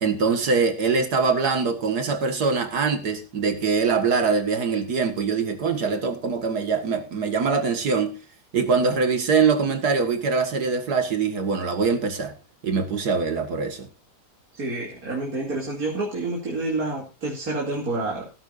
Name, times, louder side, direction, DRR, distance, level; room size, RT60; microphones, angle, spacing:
voice 1, 0.0-8.2 8.5-12.3 12.6-13.9, right 5 dB, 75° right, 2.1 m, -23 dB
voice 2, 14.6-18.3, right 2 dB, 60° right, 3.2 m, -28 dB
16.0 x 13.5 x 2.6 m
omnidirectional pair, 1.7 m